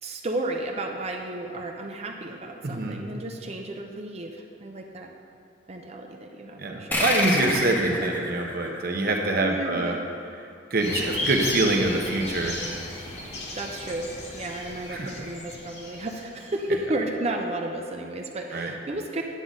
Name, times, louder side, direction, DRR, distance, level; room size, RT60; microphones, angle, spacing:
voice 1, 0.0-5.1 5.7-7.3 8.0-8.1 9.4-10.0 13.5-19.2, right 2 dB, 35° right, 2 dB, 0.6 m, -33 dB
voice 2, 2.6-3.0 6.6-9.9 10.7-12.6 14.9-15.1 18.5-18.7, right 2 dB, 55° right, 1 dB, 1.0 m, -25 dB
sound 1, 6.9-9.9, left 1 dB, 10° left, 1.0 m, -28 dB
sound 2, 10.8-16.5, left 1 dB, 70° left, 2.0 m, -34 dB
9.7 x 3.9 x 7.4 m, 2.4 s
head